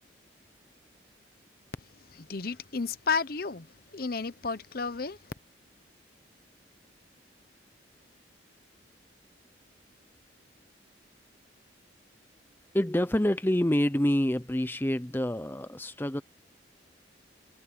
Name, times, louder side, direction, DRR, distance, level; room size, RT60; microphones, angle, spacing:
voice 1, 2.1-3.7 3.9-5.2, left 4 dB, 50° left, 0.8 m, -32 dB
voice 2, 12.7-16.2, left 1 dB, 10° left, 0.6 m, -27 dB
head